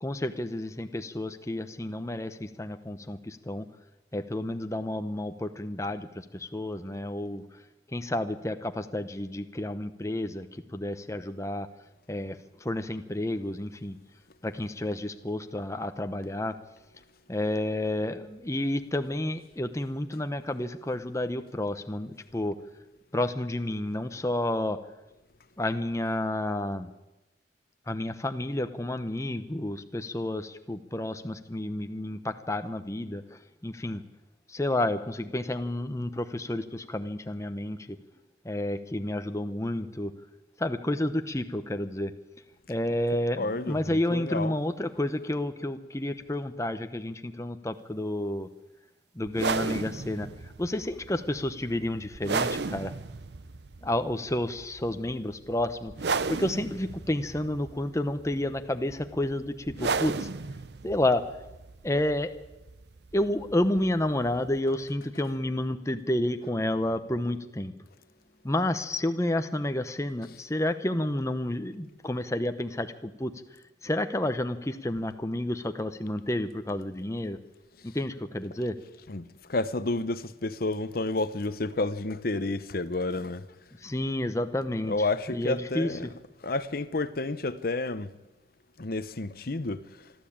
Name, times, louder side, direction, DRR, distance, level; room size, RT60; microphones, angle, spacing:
voice 1, 0.0-3.7 4.1-7.4 7.9-11.7 12.1-14.0 14.4-16.5 17.3-22.5 23.1-24.8 25.6-26.9 27.9-34.0 34.5-37.8 38.4-40.1 40.6-42.1 42.7-48.5 49.2-50.3 50.6-52.9 53.8-60.3 60.8-61.2 61.8-62.3 63.1-67.7 68.4-73.3 73.8-77.4 77.9-78.7 83.8-84.9 85.3-85.9, left 1 dB, 15° left, 0.9 m, -30 dB
voice 2, 43.4-44.5 77.8-78.0 79.1-83.5 84.9-86.1 86.4-88.1 88.8-90.0, left 2 dB, 55° left, 0.9 m, -30 dB
sound 1, 49.3-64.6, right 4 dB, 65° right, 0.7 m, -35 dB
25.5 x 12.5 x 8.8 m
head